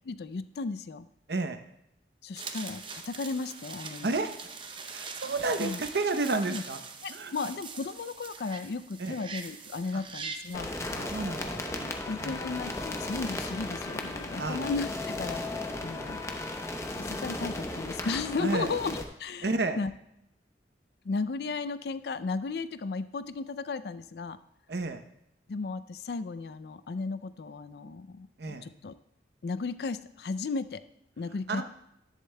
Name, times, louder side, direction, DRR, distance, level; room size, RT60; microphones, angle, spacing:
voice 1, 0.0-1.1 2.2-4.2 5.6-5.8 6.5-6.6 7.0-10.7 12.1-15.4 15.8-16.2 16.9-19.5 19.8-19.9 21.0-24.4 25.5-28.9 29.4-30.8 31.2-31.6, left 4 dB, 60° left, 14 dB, 0.4 m, -35 dB
voice 2, 1.3-1.6 4.0-4.3 4.8-6.8 7.1-7.5 9.0-9.1 9.9-10.0 10.8-12.4 14.4-14.6 15.8-16.1 18.4-18.7 19.4-19.8 24.7-25.0 28.4-28.6 31.5-31.6, right 3 dB, 65° right, 8 dB, 0.7 m, -32 dB
sound 1, 2.4-10.6, right 5 dB, 30° right, 0.6 m, -42 dB
sound 2, 10.5-19.0, left 2 dB, 15° left, 0.7 m, -35 dB
11.0 x 10.0 x 2.2 m, 0.78 s
head